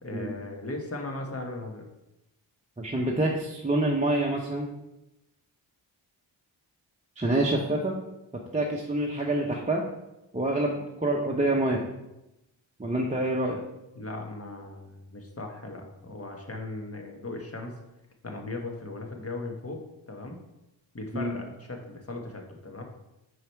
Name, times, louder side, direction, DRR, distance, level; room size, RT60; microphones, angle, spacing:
voice 1, 0.0-1.9 14.0-17.7 18.2-19.8 20.1-20.4 20.9-22.8, left 2 dB, 30° left, 2 dB, 1.4 m, -38 dB
voice 2, 2.8-4.7 7.2-8.0 8.5-9.8 10.3-11.8 12.8-13.6 21.1-21.3, right 1 dB, 15° right, -2 dB, 0.9 m, -26 dB
4.8 x 4.7 x 4.6 m, 0.93 s
cardioid pair, 45°, 48 cm